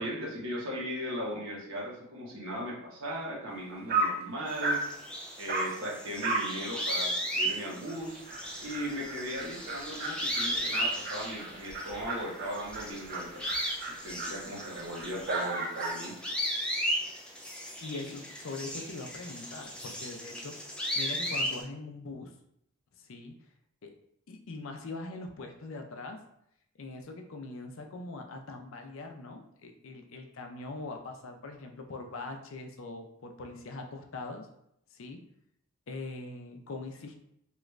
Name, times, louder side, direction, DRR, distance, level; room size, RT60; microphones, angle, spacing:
voice 1, 0.0-4.8 5.4-8.2 8.6-13.5 13.9-16.1 18.0-18.1, equal, 75° right, -3 dB, 1.1 m, -38 dB
Dog, 3.5-3.6 3.9-4.2 4.6-4.9 5.5-5.8 6.2-6.5 6.9-7.0 7.4-7.5 7.8-8.0 8.2-16.1, right 2 dB, 45° right, 0.5 m, -35 dB
sound 1, 4.5-12.2 12.5-21.6, equal, 5° left, 0.3 m, -36 dB
voice 2, 17.8-20.6 21.0-22.3 23.0-23.3 23.8-23.9 24.3-26.2 26.8-34.5 34.9-35.2 35.9-37.2, left 3 dB, 70° left, 4 dB, 0.5 m, -42 dB
3.0 x 2.4 x 3.1 m, 0.76 s
head